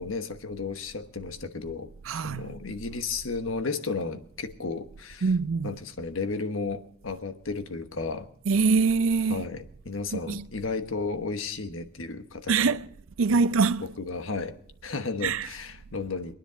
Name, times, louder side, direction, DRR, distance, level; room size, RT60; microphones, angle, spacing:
voice 1, 0.0-5.3 5.6-8.3 9.3-12.7 13.3-13.5 14.0-14.5 14.8-16.3, left 4 dB, 85° left, 1.2 m, -33 dB
voice 2, 2.1-2.4 5.2-5.7 8.5-9.5 10.1-10.4 12.5-12.9 13.2-13.9 15.2-15.5, right 4 dB, 90° right, 0.5 m, -24 dB
22.0 x 10.0 x 5.1 m
head